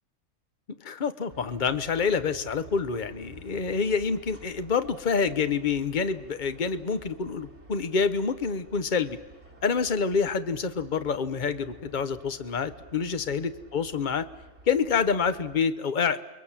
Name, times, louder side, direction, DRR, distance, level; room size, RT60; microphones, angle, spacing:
voice 1, 0.8-9.2 9.6-14.3 14.7-16.2, left 5 dB, 35° left, 11 dB, 1.1 m, -27 dB
sound 1, 1.3-15.6, right 2 dB, 50° right, 3.0 m, -51 dB
29.0 x 21.5 x 7.4 m, 1.0 s
omnidirectional pair, 1.5 m